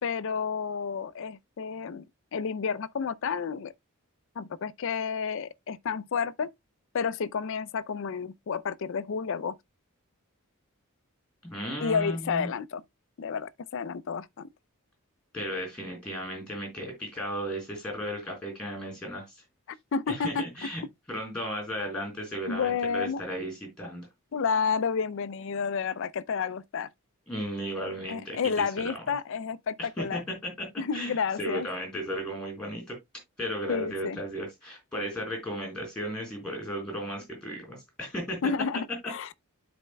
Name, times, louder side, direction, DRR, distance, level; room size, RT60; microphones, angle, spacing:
voice 1, 0.0-2.1 2.3-3.7 4.4-6.5 6.9-9.5 11.8-12.8 13.2-14.5 19.7-20.4 22.5-23.2 24.3-26.9 28.1-30.2 30.8-31.7 33.7-34.2 38.4-39.3, left 6 dB, 60° left, 0.4 m, -30 dB
voice 2, 11.4-12.5 15.3-19.4 20.1-20.8 21.1-24.1 27.3-28.7 29.8-30.2 30.9-33.0 33.4-38.4, equal, 5° left, 4.3 m, -35 dB
12.5 x 4.3 x 2.2 m
head